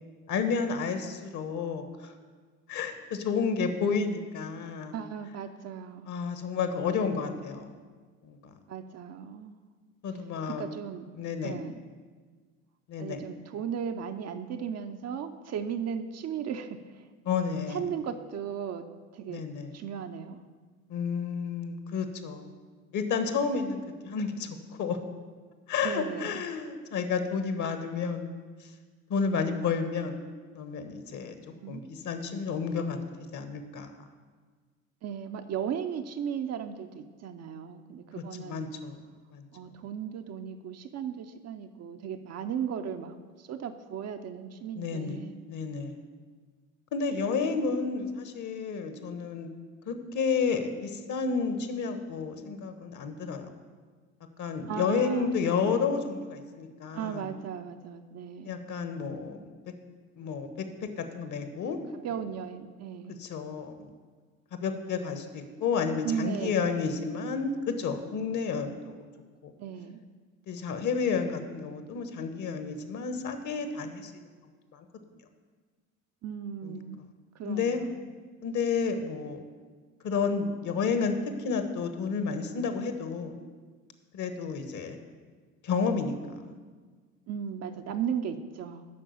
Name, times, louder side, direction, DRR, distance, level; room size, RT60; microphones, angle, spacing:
voice 1, 0.3-2.1 2.7-4.9 6.1-7.7 8.2-8.5 10.0-10.7 11.1-11.6 12.9-13.2 17.2-17.8 19.3-19.7 20.9-22.5 22.9-25.0 25.7-28.3 28.6-28.7 29.1-30.2 30.5-31.4 31.7-33.0 33.3-33.9 38.1-39.0 39.3-39.4 44.8-45.2 45.5-46.0 46.9-49.5 49.9-53.5 54.4-57.3 58.4-59.5 60.2-61.8 63.2-63.9 64.5-69.0 69.4-69.5 70.5-74.2 74.7-74.8 76.6-76.8 77.4-77.8 78.4-79.4 80.0-83.4 84.1-85.0 85.6-86.4, left 5 dB, 45° left, 8 dB, 1.2 m, -31 dB
voice 2, 4.9-6.1 8.7-9.6 10.4-11.1 11.4-11.7 13.0-17.1 17.7-18.9 19.1-19.4 19.7-20.4 25.8-26.4 31.3-31.8 35.0-38.6 39.5-45.3 54.7-55.4 56.9-58.5 62.0-63.2 66.0-66.8 69.6-70.0 73.6-73.7 76.2-77.0 77.3-78.0 87.3-88.9, right 8 dB, 40° right, 7 dB, 0.7 m, -36 dB
8.6 x 6.0 x 7.0 m, 1.5 s
hypercardioid pair, 65°, 41 cm